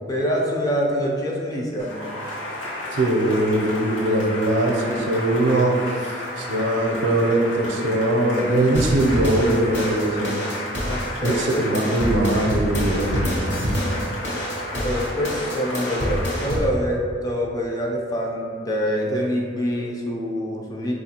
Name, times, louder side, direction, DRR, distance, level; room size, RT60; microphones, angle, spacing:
voice 1, 0.1-2.1 10.8-11.7 14.8-20.9, equal, 20° left, -2 dB, 0.4 m, -25 dB
Cheering / Applause, 1.8-16.6, left 1 dB, 90° left, 1.0 m, -33 dB
voice 2, 2.9-10.4 11.2-14.0, right 1 dB, 80° right, 2 dB, 0.5 m, -21 dB
sound 1, 8.7-16.7, equal, 60° left, 1.0 m, -27 dB
4.5 x 2.4 x 2.8 m, 2.1 s
head